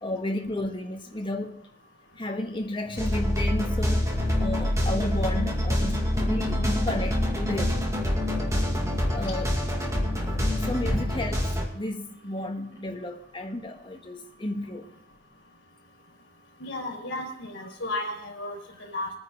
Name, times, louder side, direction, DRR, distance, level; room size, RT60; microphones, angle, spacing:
voice 1, 0.0-1.6 2.2-4.1 4.4-7.9 9.1-9.6 10.2-14.9, left 1 dB, 25° left, 1.4 m, -33 dB
sound 1, 2.8-11.4, left 4 dB, 50° left, 3.4 m, -37 dB
sound 2, 3.0-11.7, equal, 15° right, 2.0 m, -26 dB
voice 2, 16.6-19.1, left 1 dB, 70° left, 4.0 m, -34 dB
22.0 x 9.5 x 3.7 m
head